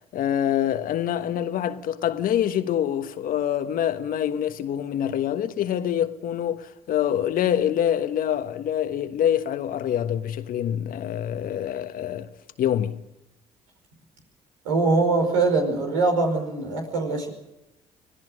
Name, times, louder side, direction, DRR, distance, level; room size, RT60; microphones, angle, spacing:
voice 1, 0.1-12.3 12.6-13.0, left 10 dB, 65° left, 1.3 m, -25 dB
voice 2, 14.6-17.3, right 3 dB, 90° right, 5.3 m, -22 dB
25.5 x 17.5 x 6.5 m
hypercardioid pair, 55°, 16 cm